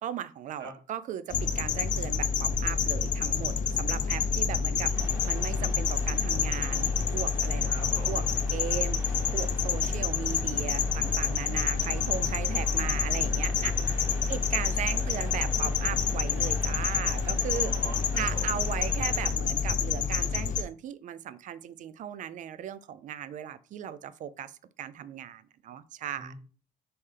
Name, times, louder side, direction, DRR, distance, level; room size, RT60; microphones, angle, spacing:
voice 1, 0.0-7.8 8.1-8.2 8.5-9.0 9.3-17.7 18.1-26.3, right 9 dB, 50° right, 15 dB, 0.4 m, -37 dB
sound 1, 1.3-20.6, left 6 dB, 50° left, 0.5 m, -28 dB
voice 2, 4.5-5.2 7.7-8.2 13.6-13.8 14.2-14.3 14.8-15.2 17.4-18.6 26.2-26.3, right 3 dB, 80° right, 0 dB, 1.6 m, -45 dB
sound 2, 4.9-19.3, right 1 dB, 15° right, 1.8 m, -46 dB
4.2 x 3.3 x 3.7 m, 0.39 s
cardioid pair, 110°, 17 cm